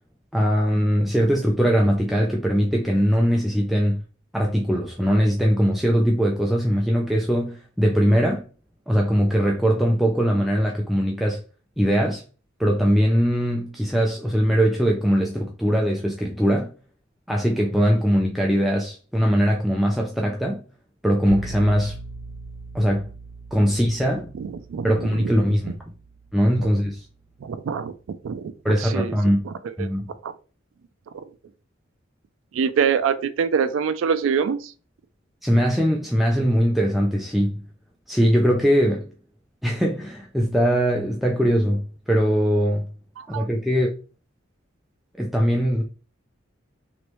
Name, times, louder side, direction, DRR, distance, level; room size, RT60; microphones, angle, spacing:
voice 1, 0.3-4.0 4.3-8.5 8.9-11.4 11.8-12.2 12.6-16.7 17.3-20.6 21.0-22.0 22.7-23.1 23.5-24.3 24.8-25.8 26.3-27.0 28.6-29.5 29.8-30.1 35.4-37.6 38.1-39.1 39.6-42.9 43.3-43.9 45.2-45.8, equal, ahead, 0.4 m, -21 dB
sound 1, 21.3-27.0, right 2 dB, 30° right, 1.4 m, -40 dB
voice 2, 24.4-25.3 25.6-25.7 27.4-27.9 28.2-29.1 29.4-29.5 29.8-29.9 30.2-30.3 31.1-31.2 32.5-34.7 43.2-43.5, right 6 dB, 75° right, 0.3 m, -25 dB
3.0 x 3.0 x 3.0 m
head